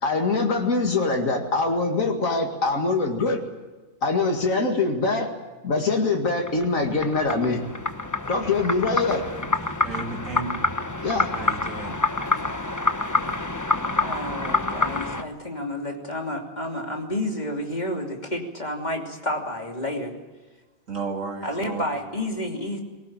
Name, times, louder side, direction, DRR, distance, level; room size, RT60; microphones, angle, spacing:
voice 1, 0.0-3.4 4.0-5.3 5.6-7.6 8.3-9.3 11.0-11.3, left 3 dB, 85° left, 2 dB, 2.5 m, -23 dB
sound 1, 6.3-15.2, left 2 dB, 15° left, 1.0 m, -27 dB
voice 2, 9.8-10.5 11.3-12.0 20.9-21.8, right 4 dB, 75° right, 2 dB, 3.0 m, -33 dB
voice 3, 14.0-20.1 21.4-22.8, left 1 dB, 30° left, 1 dB, 3.1 m, -30 dB
21.0 x 18.0 x 8.9 m, 1.2 s
omnidirectional pair, 1.4 m